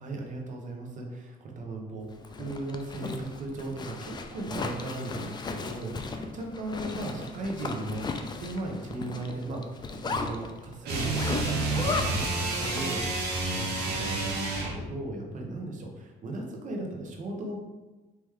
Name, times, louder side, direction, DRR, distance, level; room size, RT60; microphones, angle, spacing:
voice 1, 0.0-8.0 8.4-13.7 14.0-17.6, right 2 dB, 50° right, 1 dB, 1.0 m, -37 dB
Zipper (clothing), 2.1-13.3, left 4 dB, 25° left, 0.4 m, -36 dB
sound 1, 10.8-14.8, right 2 dB, 90° right, 1.1 m, -29 dB
4.6 x 3.0 x 3.6 m, 1.2 s
cardioid pair, 110°, 17 cm